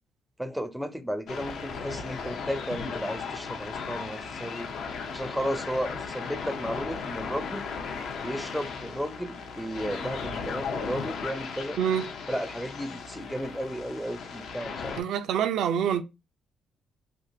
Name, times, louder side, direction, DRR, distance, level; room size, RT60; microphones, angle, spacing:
voice 1, 0.4-4.7 5.1-7.6 8.2-11.8 12.3-15.0, equal, ahead, 0.4 m, -34 dB
sound 1, 1.3-15.0, left 5 dB, 75° left, 0.6 m, -36 dB
voice 2, 15.0-16.0, right 8 dB, 80° right, 0.4 m, -26 dB
3.5 x 2.4 x 2.6 m
cardioid pair, 90°, 0 cm